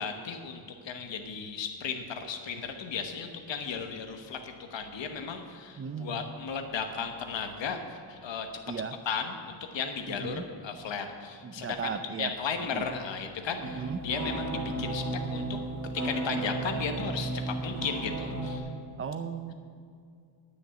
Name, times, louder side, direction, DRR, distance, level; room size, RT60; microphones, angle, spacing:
voice 1, 0.0-8.5 9.1-15.6 15.9-18.6, left 6 dB, 70° left, 6 dB, 1.1 m, -35 dB
voice 2, 5.8-6.3 8.7-9.0 10.1-10.4 11.4-12.3 12.7-12.9 13.6-14.0 19.0-19.5, right 6 dB, 30° right, 11 dB, 0.5 m, -36 dB
sound 1, 13.6-18.6, right 2 dB, 45° right, 1.5 m, -34 dB
10.5 x 6.5 x 9.0 m, 2.3 s
wide cardioid pair, 180°, 46 cm